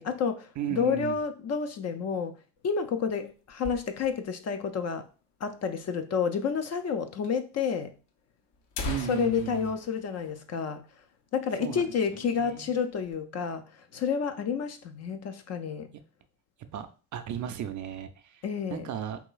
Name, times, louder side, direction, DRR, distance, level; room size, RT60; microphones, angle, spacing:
voice 1, 0.0-2.4 2.6-5.1 5.4-8.0 9.1-10.8 11.3-15.9 18.4-18.9, left 6 dB, 35° left, 0.4 m, -30 dB
voice 2, 0.6-1.2 8.8-9.7 11.6-11.9 12.2-12.7 16.6-18.4 18.7-19.2, right 9 dB, 40° right, 0.4 m, -35 dB
sound 1, 2.6-4.4 4.7-4.8 5.0-5.1 5.8-5.9 6.8-6.9 7.2-7.3 8.1-8.2 8.5-11.1 11.4-11.6 12.0-12.2 12.7-13.2, left 3 dB, 60° left, 0.8 m, -40 dB
4.9 x 3.0 x 2.3 m
hypercardioid pair, 50°, 48 cm